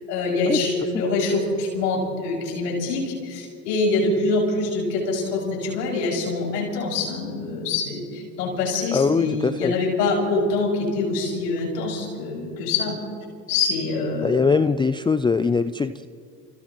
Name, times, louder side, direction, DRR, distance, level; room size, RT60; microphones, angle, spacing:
voice 1, 0.1-13.0 13.5-14.4, left 3 dB, 85° left, -2 dB, 6.5 m, -25 dB
voice 2, 8.9-9.7 14.2-16.1, left 4 dB, 10° left, 12 dB, 0.4 m, -21 dB
29.0 x 29.0 x 3.1 m, 2.3 s
hypercardioid pair, 75°, 47 cm